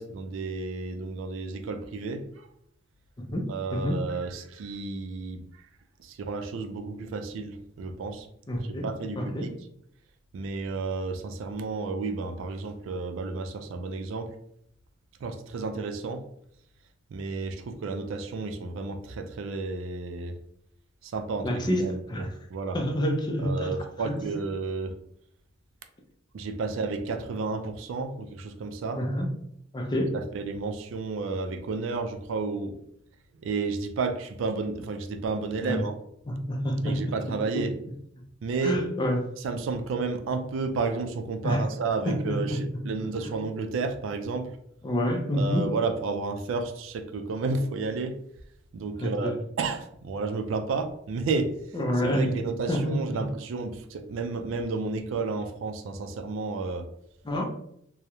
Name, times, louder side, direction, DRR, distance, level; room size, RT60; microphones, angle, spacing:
voice 1, 0.0-2.5 3.5-5.4 6.0-8.3 8.6-9.5 10.3-14.4 15.2-16.2 17.1-20.3 21.0-22.8 23.4-25.0 26.3-29.0 30.1-32.8 33.4-35.9 36.8-37.8 38.4-38.8 39.4-44.6 45.4-48.2 48.7-51.6 52.0-56.9, right 4 dB, 75° right, 7 dB, 0.3 m, -32 dB
voice 2, 3.3-4.0 8.5-8.9 9.2-9.5 21.4-22.3 22.7-24.2 29.0-29.3 29.7-30.1 35.6-35.8 36.3-37.2 37.5-37.7 38.6-39.3 41.4-41.6 42.1-42.8 43.2-43.3 44.8-45.7 49.0-49.4 51.7-52.4 52.7-53.3 57.2-57.4, equal, 20° left, 2 dB, 0.4 m, -28 dB
2.3 x 2.0 x 2.9 m, 0.72 s
head